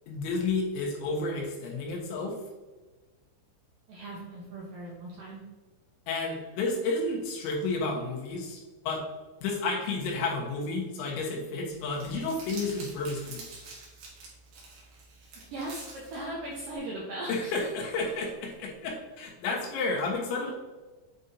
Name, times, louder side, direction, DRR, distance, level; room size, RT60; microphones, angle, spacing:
voice 1, 0.1-2.3 6.1-9.0 9.4-13.4 17.3-20.5, left 3 dB, 80° left, -1 dB, 3.5 m, -31 dB
voice 2, 3.9-5.4 15.4-17.5, right 1 dB, 75° right, -4 dB, 2.0 m, -38 dB
Crumpling crinkling, 11.7-16.8, right 3 dB, 60° right, 2.8 m, -47 dB
8.3 x 5.3 x 2.7 m, 1.2 s
omnidirectional pair, 5.3 m